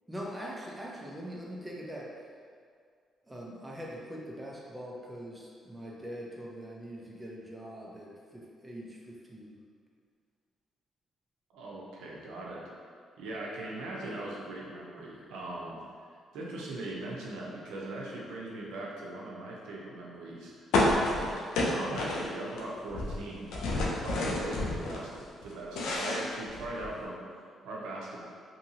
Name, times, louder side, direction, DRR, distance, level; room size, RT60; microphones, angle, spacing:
voice 1, 0.1-2.3 3.2-9.6, equal, 15° right, -3 dB, 0.5 m, -42 dB
voice 2, 11.5-12.6 13.2-15.8 16.3-21.4 21.7-28.2, right 2 dB, 90° right, -4 dB, 0.5 m, -40 dB
sound 1, 20.7-22.6 22.9-25.0 25.4-27.0, left 2 dB, 85° left, 0.4 m, -30 dB
2.7 x 2.7 x 2.7 m, 2.1 s
cardioid pair, 90°, 0 cm